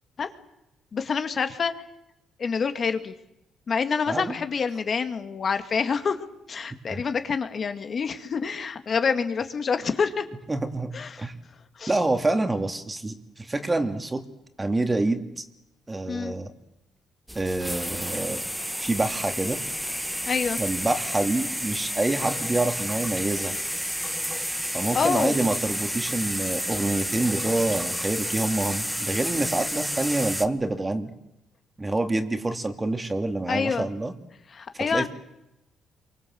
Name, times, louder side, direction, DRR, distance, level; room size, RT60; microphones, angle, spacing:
voice 1, 0.9-1.7 2.4-3.1 3.7-10.3 10.9-11.3 11.8-11.9 16.1-16.3 20.2-20.6 24.9-25.4 33.5-33.9 34.5-35.1, left 5 dB, 45° left, 8 dB, 2.2 m, -27 dB
voice 2, 10.5-10.9 11.2-11.3 11.9-14.2 14.6-15.4 15.9-16.5 17.3-18.4 18.8-19.6 20.6-23.5 24.7-31.1 31.8-34.1 34.7-35.1, right 2 dB, 20° right, 7 dB, 2.9 m, -27 dB
sound 1, 17.3-30.5, equal, ahead, 1.6 m, -30 dB
27.0 x 24.5 x 7.9 m, 0.89 s
cardioid pair, 90°, 0 cm